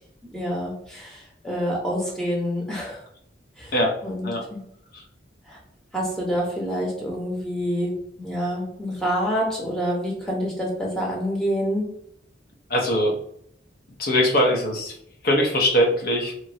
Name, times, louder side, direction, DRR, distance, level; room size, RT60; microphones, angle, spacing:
voice 1, 0.3-3.0 3.6-3.7 4.0-4.6 5.5-5.6 5.9-7.9 8.2-11.9, equal, 5° left, -4 dB, 0.9 m, -27 dB
voice 2, 12.7-13.2 14.0-14.9 15.2-16.3, equal, 55° left, 0 dB, 0.7 m, -21 dB
3.0 x 2.5 x 2.6 m, 0.70 s
head